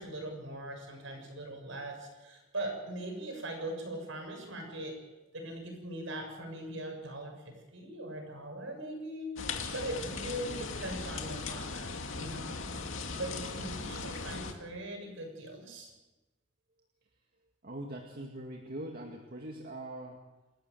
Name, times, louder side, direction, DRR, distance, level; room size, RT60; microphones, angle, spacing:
voice 1, 0.0-4.9 5.3-12.9 13.2-15.9, right 1 dB, 70° right, 3 dB, 7.1 m, -41 dB
sound 1, 9.4-14.5, left 4 dB, 70° left, 2.4 m, -38 dB
voice 2, 17.6-20.2, right 1 dB, 50° right, 1 dB, 2.2 m, -42 dB
28.0 x 13.0 x 8.0 m, 1.1 s
head